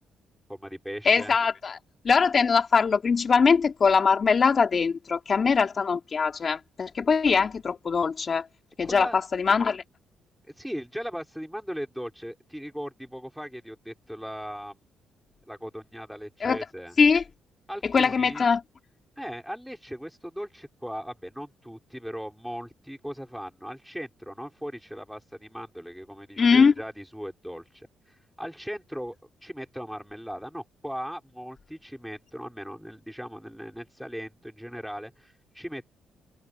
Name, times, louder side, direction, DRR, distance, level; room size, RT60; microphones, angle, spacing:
voice 1, 0.5-1.3 8.8-9.2 10.6-14.8 15.5-17.0 17.7-18.4 19.2-29.2 29.4-35.9, equal, ahead, 5.7 m, -38 dB
voice 2, 1.0-1.8 2.0-8.5 8.8-9.8 16.4-16.6 17.0-17.2 17.8-18.6 26.4-26.7, left 5 dB, 40° left, 2.8 m, -22 dB
cardioid pair, 90°, 0 cm